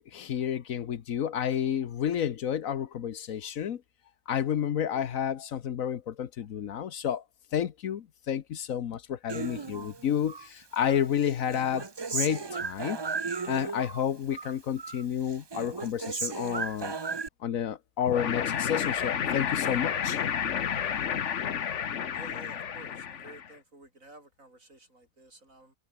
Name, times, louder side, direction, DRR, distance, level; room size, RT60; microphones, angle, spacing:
voice 1, 0.0-3.8 4.3-7.2 7.5-11.9 12.1-13.0 13.5-17.0 17.4-20.2, left 9 dB, 75° left, 1.4 m, -30 dB
Human voice, 9.3-10.5 10.8-14.0 14.3-15.0 15.3-17.3, right 4 dB, 35° right, 0.4 m, -35 dB
sound 1, 18.1-23.5, left 8 dB, 60° left, 1.4 m, -31 dB
voice 2, 22.1-25.8, right 2 dB, 65° right, 7.3 m, -52 dB
omnidirectional pair, 1.5 m